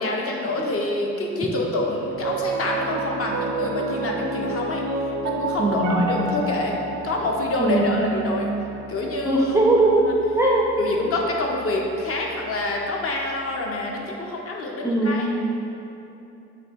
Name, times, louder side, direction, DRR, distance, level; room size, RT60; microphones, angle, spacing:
voice 1, 0.0-4.8 5.2-6.8 7.0-8.5 8.9-9.4 9.8-10.1 10.8-15.5, left 2 dB, 45° left, -1 dB, 0.6 m, -27 dB
Piano, 2.1-12.5, right 3 dB, 75° right, 0.5 m, -30 dB
voice 2, 5.6-6.0 7.6-8.1 9.2-10.7 14.8-15.3, right 2 dB, 10° right, -3 dB, 0.3 m, -20 dB
3.2 x 2.9 x 4.2 m, 2.8 s
cardioid pair, 90°, 30 cm